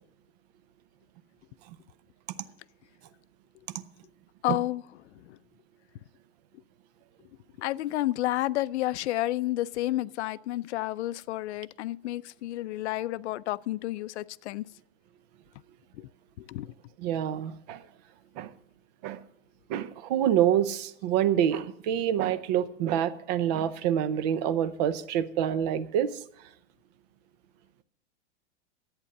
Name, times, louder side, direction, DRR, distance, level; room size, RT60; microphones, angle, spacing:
voice 1, 4.4-4.8 5.1-5.4 7.6-14.6 16.0-16.1 16.4-16.7, left 16 dB, 75° left, 0.5 m, -31 dB
voice 2, 17.0-17.8 18.4-18.5 19.0-19.2 19.7-26.2, right 10 dB, 35° right, 0.6 m, -27 dB
11.0 x 8.8 x 6.5 m
supercardioid pair, 170°, 35 cm